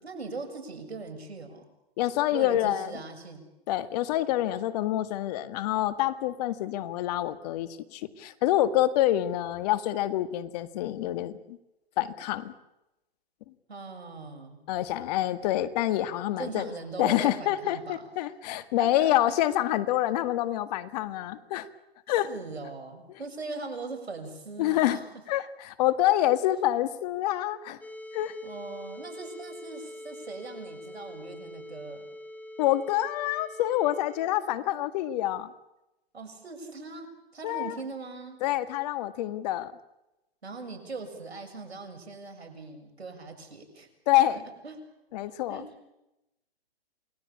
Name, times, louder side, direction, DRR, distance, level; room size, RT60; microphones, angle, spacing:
voice 1, 0.0-1.6 2.3-3.5 13.7-14.6 16.4-18.1 18.8-19.1 22.2-25.0 28.4-32.1 36.1-38.4 40.4-43.9 44.6-44.8 45.5-45.7, right 3 dB, 85° right, 6 dB, 7.0 m, -40 dB
voice 2, 2.0-3.0 3.7-11.6 12.0-12.5 14.7-16.7 17.0-21.7 22.1-22.3 24.6-25.0 25.3-27.8 28.1-28.3 32.6-35.5 37.4-37.8 38.4-39.7 44.1-44.4 45.1-45.6, left 14 dB, 40° left, 12 dB, 1.8 m, -27 dB
sound 1, 27.8-34.3, left 1 dB, 5° left, 2.6 m, -44 dB
28.0 x 20.5 x 8.6 m, 0.92 s
hypercardioid pair, 130°, 31 cm